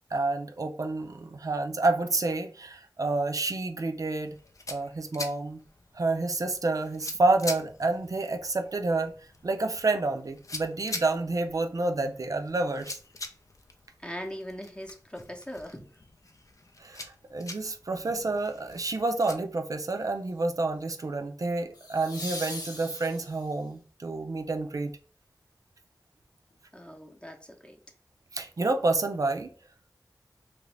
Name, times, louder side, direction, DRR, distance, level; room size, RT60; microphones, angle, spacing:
voice 1, 0.1-4.4 4.7-5.6 5.9-9.1 9.4-13.0 16.8-24.9 28.3-29.5, right 3 dB, 60° right, 5 dB, 0.5 m, -29 dB
sound 1, 4.2-19.4, left 2 dB, 55° left, 0.5 m, -44 dB
voice 2, 14.0-15.9 26.7-27.8, equal, 15° left, 3 dB, 0.8 m, -40 dB
sound 2, 18.7-19.1 21.7-23.6 26.5-26.6, left 1 dB, 80° left, 0.9 m, -40 dB
3.0 x 2.6 x 3.2 m, 0.41 s
cardioid pair, 40°, 7 cm